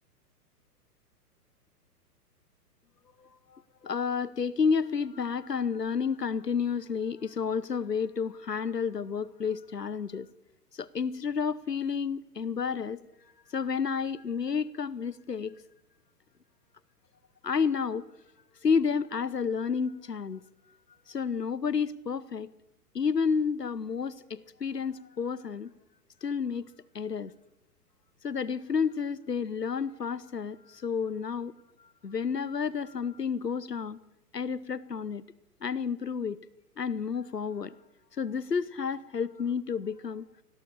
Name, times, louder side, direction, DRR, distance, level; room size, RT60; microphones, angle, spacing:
voice 1, 3.2-10.3 10.7-13.0 13.5-15.6 17.4-18.0 18.6-20.4 21.1-22.5 22.9-25.7 26.2-26.7 26.9-27.3 28.2-31.5 31.8-34.0 34.3-35.2 35.6-36.4 36.8-37.8 38.1-40.3, left 6 dB, 85° left, 20 dB, 1.0 m, -30 dB
24.5 x 18.5 x 6.7 m, 0.88 s
figure-of-eight pair, 110°, 47 cm